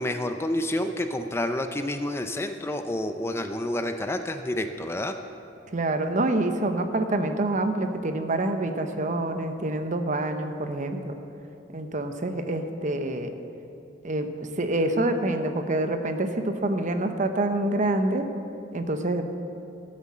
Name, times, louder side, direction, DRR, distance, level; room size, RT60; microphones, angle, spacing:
voice 1, 0.0-5.2, left 1 dB, 15° left, 7 dB, 0.4 m, -29 dB
voice 2, 5.7-11.2 11.7-13.3 14.0-14.3 14.6-18.3 18.7-19.3, right 2 dB, 45° right, 7 dB, 0.8 m, -26 dB
12.5 x 7.6 x 7.3 m, 2.8 s
head